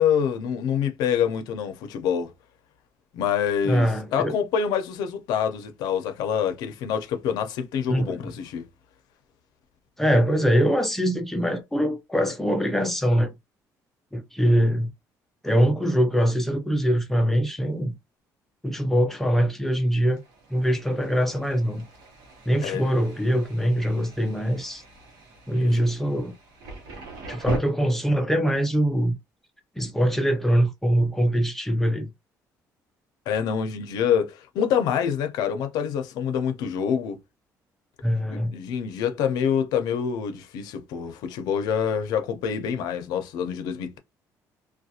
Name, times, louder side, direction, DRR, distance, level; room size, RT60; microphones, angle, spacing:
voice 1, 0.0-2.3 3.1-8.6 22.6-22.8 25.6-25.8 33.3-37.2 38.3-44.0, left 8 dB, 85° left, 0.5 m, -26 dB
voice 2, 3.6-4.3 7.9-8.3 10.0-13.3 14.1-14.9 15.4-17.9 18.6-20.2 20.5-21.9 22.5-24.8 25.5-26.3 27.3-29.2 29.8-32.1 38.0-38.5, equal, 5° left, 0.4 m, -23 dB
Thunder, 19.4-27.6, right 3 dB, 80° right, 0.8 m, -41 dB
2.4 x 2.2 x 2.7 m
cardioid pair, 180°, 7 cm